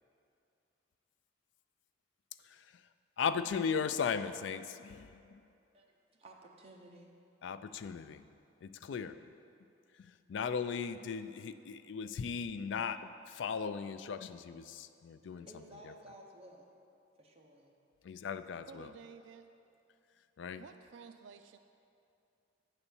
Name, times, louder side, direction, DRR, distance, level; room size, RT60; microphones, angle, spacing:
voice 1, 3.2-5.4 7.4-8.2 8.6-9.2 10.0-15.5 18.0-18.9 20.4-20.6, left 6 dB, 70° left, 12 dB, 0.3 m, -37 dB
voice 2, 5.7-7.1 15.3-16.7 17.2-17.7, right 1 dB, 35° right, -1 dB, 0.9 m, -55 dB
voice 3, 18.6-19.5 20.6-21.6, right 5 dB, 80° right, 8 dB, 0.4 m, -52 dB
9.0 x 4.1 x 7.0 m, 2.6 s
head